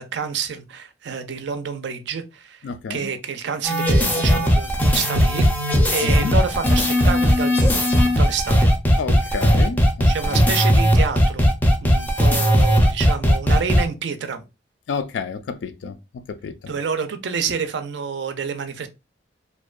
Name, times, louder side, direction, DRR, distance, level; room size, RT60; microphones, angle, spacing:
voice 1, 0.0-2.6 2.9-5.5 5.8-8.7 10.1-11.5 11.8-14.4 15.8-15.9 16.7-18.9, right 6 dB, 70° right, 0.4 m, -28 dB
voice 2, 2.6-3.1 6.0-6.3 9.0-10.5 14.9-16.0 16.3-16.7, left 5 dB, 75° left, 0.3 m, -30 dB
sound 1, 3.6-13.8, equal, 10° left, 0.5 m, -17 dB
2.6 x 2.2 x 2.3 m
head